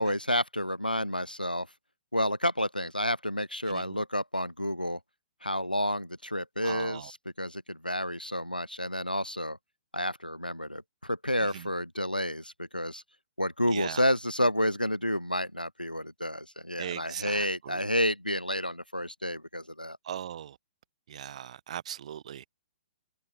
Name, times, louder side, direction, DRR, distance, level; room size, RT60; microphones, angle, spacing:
voice 1, 0.0-1.7 2.1-5.0 5.4-9.6 9.9-13.0 13.4-20.0, equal, 90° left, 1.6 m, -30 dB
voice 2, 3.7-4.0 6.6-7.1 11.4-11.7 13.7-14.1 16.8-17.9 20.0-20.6 21.1-22.5, right 10 dB, 50° right, 3.4 m, -39 dB
figure-of-eight pair, 120°, 5 cm